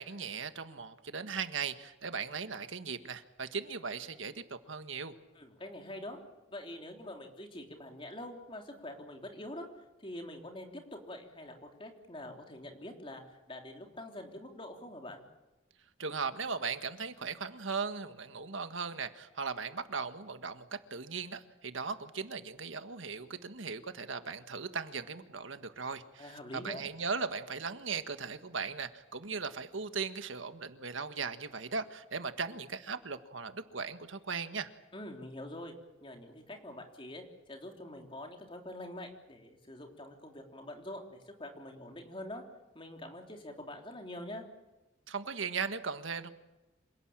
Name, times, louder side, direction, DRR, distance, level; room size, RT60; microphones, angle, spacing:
voice 1, 0.0-5.1 16.0-34.7 45.1-46.3, right 5 dB, 80° right, 9 dB, 1.6 m, -38 dB
voice 2, 5.3-6.2 6.5-9.7 10.0-15.2 26.2-26.8 34.9-35.7 36.0-42.4 42.7-44.4, left 1 dB, 25° left, 3 dB, 3.4 m, -45 dB
27.0 x 18.0 x 8.9 m, 1.1 s
head